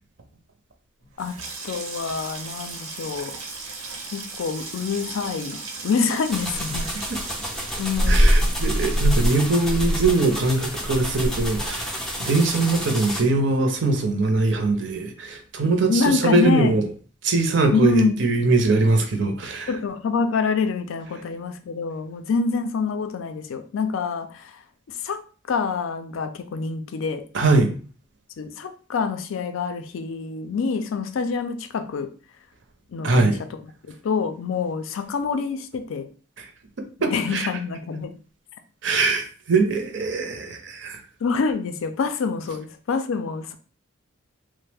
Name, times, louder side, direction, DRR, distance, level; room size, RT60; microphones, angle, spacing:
Water tap faucet / Sink (filling or washing), 1.0-13.9 14.2-14.8 15.1-15.4, right 3 dB, 85° right, 0.8 m, -38 dB
voice 1, 1.6-3.3 4.1-6.9 7.8-8.5 15.9-16.8 17.7-18.1 19.7-24.6 24.9-25.2 25.5-27.2 28.4-32.1 32.9-33.3 33.9-36.1 37.1-38.1 41.2-43.5, left 5 dB, 70° left, 9 dB, 0.4 m, -26 dB
sound 1, 6.3-13.2, equal, ahead, 0.4 m, -24 dB
voice 2, 8.1-16.9 17.2-19.7 27.3-27.7 33.0-33.4 36.4-36.5 37.0-37.5 38.8-41.0, right 3 dB, 55° right, 5 dB, 0.5 m, -22 dB
3.1 x 2.0 x 3.3 m, 0.40 s
head